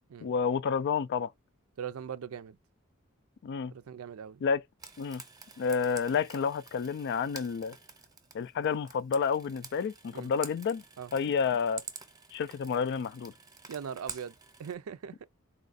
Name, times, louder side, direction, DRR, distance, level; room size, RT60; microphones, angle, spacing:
voice 1, 0.2-1.3 3.4-3.7 4.4-4.6 5.0-5.2 5.6-7.8 8.3-10.8 11.1-11.8 12.3-13.3, left 6 dB, 55° left, 0.3 m, -30 dB
voice 2, 1.8-2.6 3.7-4.4 10.1-10.3 11.0-11.1 13.7-15.3, right 7 dB, 80° right, 0.4 m, -40 dB
Frying (food), 4.8-14.7, right 5 dB, 20° right, 0.8 m, -48 dB
4.1 x 2.4 x 4.0 m
head